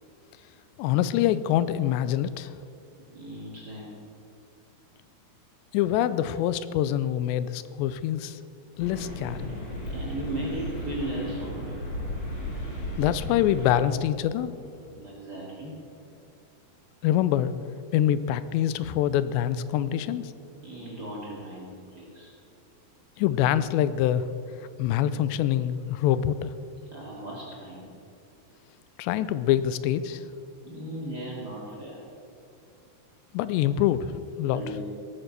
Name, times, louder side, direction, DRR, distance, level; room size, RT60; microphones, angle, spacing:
voice 1, 0.8-2.5 5.7-8.4 8.8-9.5 13.0-14.5 17.0-17.5 17.9-20.3 23.2-24.3 24.8-26.5 29.0-30.2 33.3-34.6, left 11 dB, 85° left, 15 dB, 2.8 m, -25 dB
voice 2, 3.1-4.0 9.9-11.9 14.9-15.8 20.6-22.3 26.9-27.9 30.6-32.1 34.5-34.8, right 1 dB, 30° right, -3 dB, 2.2 m, -37 dB
sound 1, 8.8-13.8, equal, 50° left, 5.9 m, -35 dB
18.0 x 9.0 x 6.7 m, 2.6 s
omnidirectional pair, 4.9 m